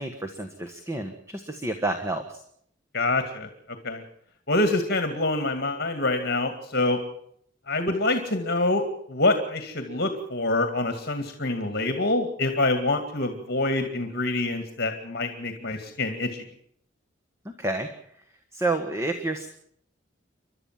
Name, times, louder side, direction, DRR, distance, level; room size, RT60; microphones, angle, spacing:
voice 1, 0.0-2.4 17.4-17.9 18.5-19.5, right 2 dB, 15° right, 5 dB, 1.5 m, -29 dB
voice 2, 2.9-3.5 3.8-4.0 4.5-7.0 7.7-16.5, left 2 dB, 55° left, 7 dB, 2.2 m, -26 dB
29.5 x 12.5 x 7.5 m, 0.68 s
head